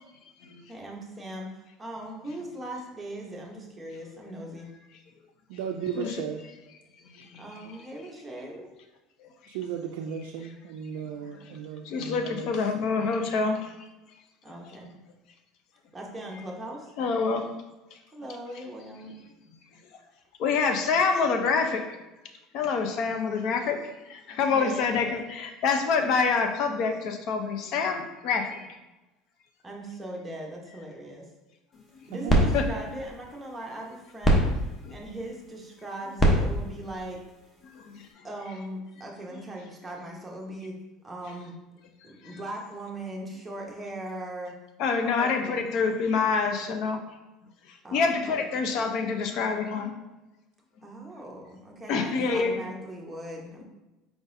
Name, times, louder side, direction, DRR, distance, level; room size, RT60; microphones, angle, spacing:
voice 1, 0.7-4.7 7.4-8.7 14.4-14.9 15.9-16.9 18.1-19.1 24.5-25.3 29.6-31.3 32.1-34.5 34.9-37.2 38.2-40.7 41.0-41.6 42.0-44.5 45.2-45.6 47.8-48.4 50.8-53.6, right 1 dB, 10° right, -2 dB, 0.9 m, -39 dB
voice 2, 5.5-6.4 9.5-12.7 32.1-32.5, right 8 dB, 80° right, 3 dB, 0.3 m, -35 dB
voice 3, 11.8-13.6 17.0-17.5 20.4-21.9 22.5-28.7 32.5-32.7 34.8-35.0 37.7-38.1 42.2-42.4 44.8-47.0 47.9-49.9 51.9-52.5, left 5 dB, 55° left, 6 dB, 0.6 m, -26 dB
sound 1, 31.7-38.1, equal, 20° left, 0.9 m, -28 dB
4.6 x 3.9 x 2.6 m, 1.0 s
supercardioid pair, 125°, 0 cm